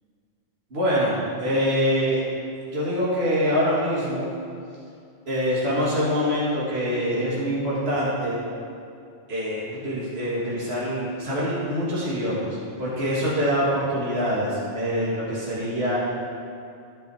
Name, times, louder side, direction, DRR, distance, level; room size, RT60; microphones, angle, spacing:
voice 1, 0.7-2.2 2.7-4.3 5.3-8.4 9.3-16.0, equal, 55° right, -8 dB, 2.4 m, -25 dB
10.5 x 9.0 x 4.9 m, 2.4 s
omnidirectional pair, 1.3 m